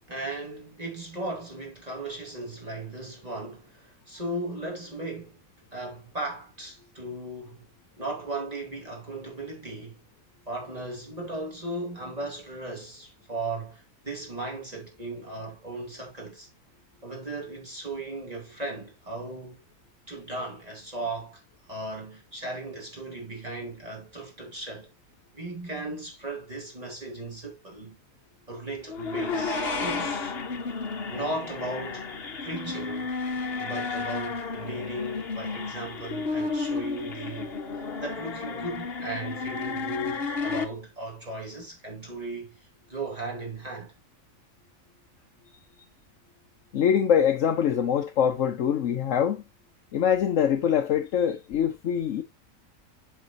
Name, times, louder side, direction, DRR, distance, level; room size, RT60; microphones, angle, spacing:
voice 1, 0.1-5.4 5.7-7.7 8.0-10.0 10.5-16.5 17.0-19.6 20.1-21.4 21.7-24.9 25.3-28.0 28.5-30.4 31.1-32.1 32.4-33.1 33.6-42.6 42.9-43.9, right 2 dB, 25° right, 2.7 m, -36 dB
sound 1, 28.9-40.6, left 4 dB, 45° left, 1.2 m, -32 dB
voice 2, 46.7-49.4 49.9-52.2, left 8 dB, 65° left, 1.1 m, -24 dB
7.9 x 6.1 x 2.6 m
omnidirectional pair, 1.5 m